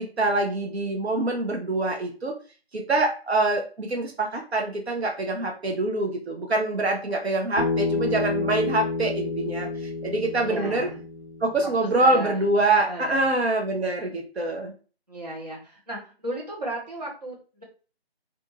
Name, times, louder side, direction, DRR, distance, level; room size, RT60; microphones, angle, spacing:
voice 1, 0.0-2.3 2.7-10.9 11.4-14.7, right 2 dB, 80° right, 2 dB, 0.8 m, -25 dB
Bass guitar, 7.6-11.9, left 3 dB, 30° left, 0.6 m, -29 dB
voice 2, 10.4-11.0 12.0-13.6 15.1-17.6, right 1 dB, 40° right, -3 dB, 0.9 m, -35 dB
2.5 x 2.3 x 2.7 m, 0.36 s
figure-of-eight pair, 175°, 32 cm